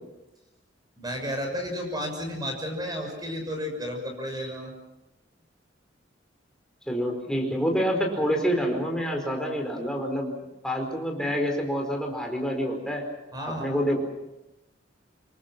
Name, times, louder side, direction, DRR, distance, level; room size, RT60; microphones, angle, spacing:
voice 1, 1.0-4.7 13.3-13.8, equal, 20° right, 3 dB, 6.1 m, -32 dB
voice 2, 6.9-10.3 10.6-13.0 13.5-14.0, equal, 5° left, 1 dB, 4.8 m, -27 dB
27.0 x 23.5 x 6.1 m, 0.98 s
head